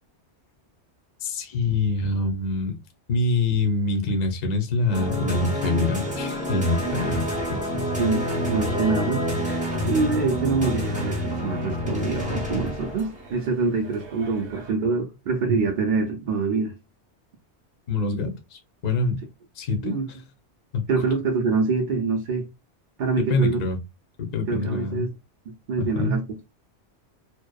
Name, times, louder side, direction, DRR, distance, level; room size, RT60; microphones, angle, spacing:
voice 1, 1.2-2.7 3.1-7.9 17.9-19.2 19.6-20.2 20.7-20.8 23.3-23.8 24.2-25.1 25.8-26.2, left 2 dB, 50° left, 0.6 m, -25 dB
sound 1, 4.9-13.2, left 1 dB, 5° right, 0.8 m, -28 dB
sound 2, 6.9-14.7, right 4 dB, 75° right, 1.0 m, -43 dB
voice 2, 8.0-9.2 9.8-16.8 19.8-20.1 20.9-22.5 23.0-23.6 24.5-25.1 25.5-26.2, right 4 dB, 60° right, 0.5 m, -25 dB
2.7 x 2.0 x 2.2 m
omnidirectional pair, 1.2 m